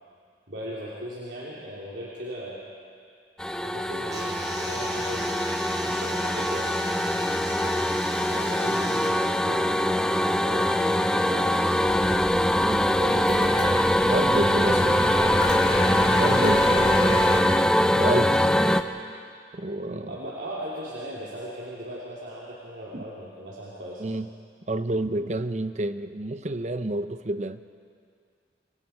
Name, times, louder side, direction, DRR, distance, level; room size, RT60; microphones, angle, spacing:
voice 1, 0.5-2.6 3.6-5.3 5.6-9.6 10.3-14.8 15.1-15.3 16.2-16.4 18.8-19.0 19.8-24.0, equal, 90° right, -7 dB, 3.6 m, -38 dB
sound 1, 3.4-18.8, left 1 dB, 5° left, 0.6 m, -23 dB
sound 2, 4.1-9.1, right 1 dB, 20° right, 3.3 m, -38 dB
sound 3, 11.8-17.4, left 2 dB, 60° left, 4.4 m, -32 dB
voice 2, 14.1-15.1 16.2-17.6 18.0-18.5 19.5-20.2 22.9-23.0 24.0-24.3 24.7-27.6, right 2 dB, 40° right, 11 dB, 0.8 m, -29 dB
28.5 x 24.5 x 4.6 m, 2.3 s
head